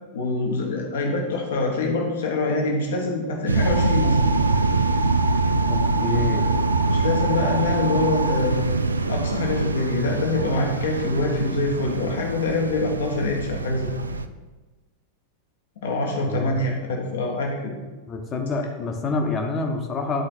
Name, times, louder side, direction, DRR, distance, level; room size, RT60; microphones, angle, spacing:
voice 1, 0.1-4.2 6.9-8.6 9.1-13.9 15.8-17.7, left 2 dB, 60° left, 1 dB, 1.3 m, -25 dB
sound 1, 3.4-14.3, right 3 dB, 75° right, 0.4 m, -24 dB
sound 2, 3.6-8.4, right 1 dB, 20° right, 1.2 m, -29 dB
voice 2, 5.7-6.5 16.3-16.7 18.1-20.2, left 3 dB, 25° left, 3 dB, 1.1 m, -27 dB
10.5 x 4.3 x 4.4 m, 1.2 s
figure-of-eight pair, 90°, 0 cm